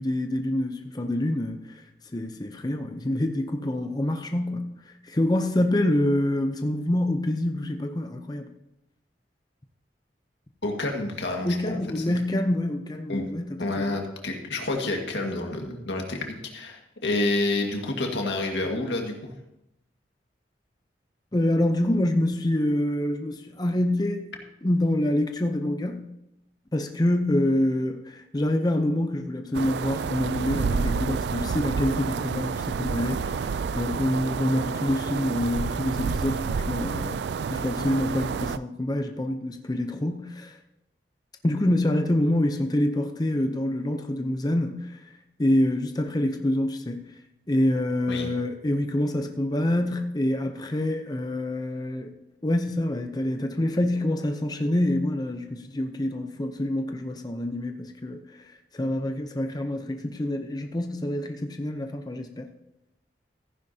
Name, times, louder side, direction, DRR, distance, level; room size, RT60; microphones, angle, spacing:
voice 1, 0.0-1.8 2.1-4.7 5.0-8.5 11.4-14.0 21.3-24.2 24.6-26.1 26.7-37.2 37.5-40.6 41.4-45.0 45.4-47.0 47.5-62.5, left 1 dB, 25° left, 5 dB, 0.6 m, -26 dB
voice 2, 10.6-12.1 13.1-13.3 13.6-19.3 48.1-48.3, left 2 dB, 90° left, 2 dB, 1.8 m, -29 dB
sound 1, 29.5-38.6, right 5 dB, 70° right, 0.3 m, -29 dB
14.5 x 10.0 x 2.8 m, 0.87 s
head